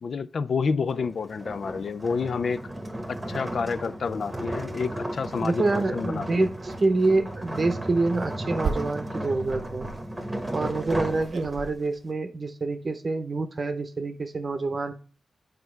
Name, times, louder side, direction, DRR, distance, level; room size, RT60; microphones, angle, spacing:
voice 1, 0.0-2.6 3.1-6.5, left 5 dB, 60° left, 0.4 m, -29 dB
sound 1, 0.9-11.9, right 1 dB, 15° right, 1.1 m, -35 dB
sound 2, 4.9-5.0 5.4-5.8 6.6-6.8 7.1-7.4 8.0-11.7, right 5 dB, 65° right, 0.5 m, -37 dB
voice 2, 5.4-9.9 10.5-14.9, right 3 dB, 35° right, 0.8 m, -26 dB
8.3 x 4.5 x 3.3 m
wide cardioid pair, 125°, 0 cm